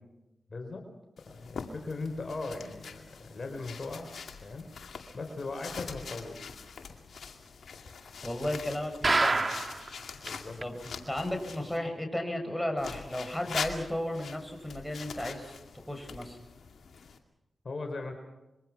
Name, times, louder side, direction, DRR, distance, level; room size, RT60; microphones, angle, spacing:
voice 1, 0.5-0.9 1.3-4.7 5.1-6.6 10.2-10.6 17.6-18.1, left 3 dB, 55° left, 4 dB, 4.6 m, -39 dB
sound 1, 1.2-11.8 12.8-17.2, left 5 dB, 80° left, 2.3 m, -43 dB
voice 2, 8.2-9.5 10.6-16.4, left 1 dB, 10° left, 4 dB, 7.0 m, -34 dB
sound 2, 9.0-9.9 10.3-10.4 10.6-10.7 11.2-11.3, right 3 dB, 45° right, 1.7 m, -26 dB
25.5 x 23.0 x 6.1 m, 0.96 s
cardioid pair, 40°, 0 cm